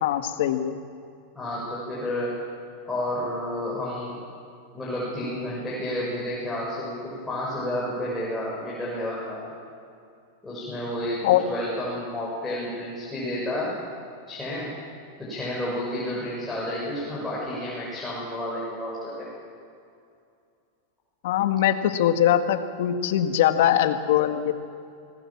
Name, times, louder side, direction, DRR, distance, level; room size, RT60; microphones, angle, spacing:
voice 1, 0.0-0.8 11.2-11.4 21.2-24.5, left 11 dB, 70° left, 8 dB, 1.8 m, -22 dB
voice 2, 1.4-2.4 2.9-4.2 4.7-9.5 10.4-13.8 14.3-14.7 15.2-19.3, left 1 dB, 10° left, -7 dB, 6.9 m, -31 dB
25.5 x 19.5 x 7.4 m, 2.4 s
supercardioid pair, 140°, 0 cm